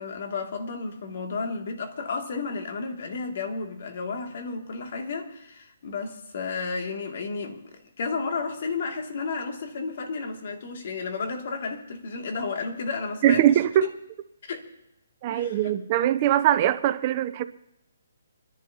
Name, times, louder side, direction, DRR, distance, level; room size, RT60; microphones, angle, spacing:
voice 1, 0.0-7.6 8.0-13.5 13.8-13.9 14.5-14.7 15.3-15.8, left 4 dB, 55° left, 2.4 m, -32 dB
voice 2, 13.2-13.8 15.2-17.4, right 12 dB, 30° right, 0.6 m, -21 dB
27.5 x 11.0 x 2.9 m
hypercardioid pair, 160°, 0 cm